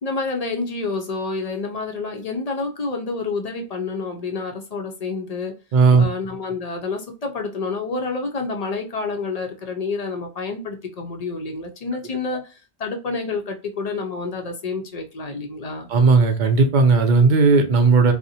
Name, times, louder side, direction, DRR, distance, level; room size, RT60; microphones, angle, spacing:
voice 1, 0.0-5.5 6.0-15.9, left 4 dB, 50° left, 0.5 m, -28 dB
voice 2, 5.7-6.0 15.9-18.1, right 4 dB, 55° right, 0.6 m, -15 dB
2.5 x 2.0 x 2.6 m
omnidirectional pair, 1.1 m